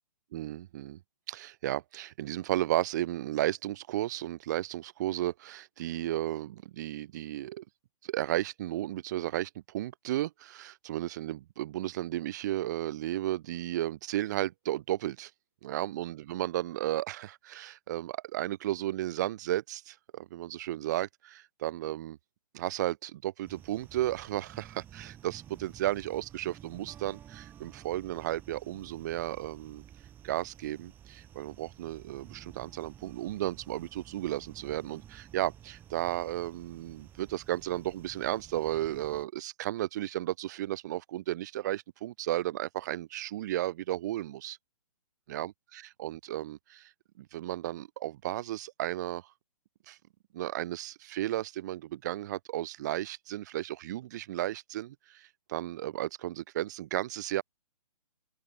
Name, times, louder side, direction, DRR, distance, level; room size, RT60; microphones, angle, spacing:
voice 1, 0.3-1.0 1.3-7.6 8.0-15.3 15.6-22.2 22.5-29.8 30.2-44.6 45.3-46.9 47.2-49.2 49.9-50.0 50.3-57.4, right 14 dB, 30° right, 0.8 m, -34 dB
sound 1, 23.5-39.3, right 10 dB, 10° right, 1.3 m, -53 dB
open air
hypercardioid pair, 165°, 19 cm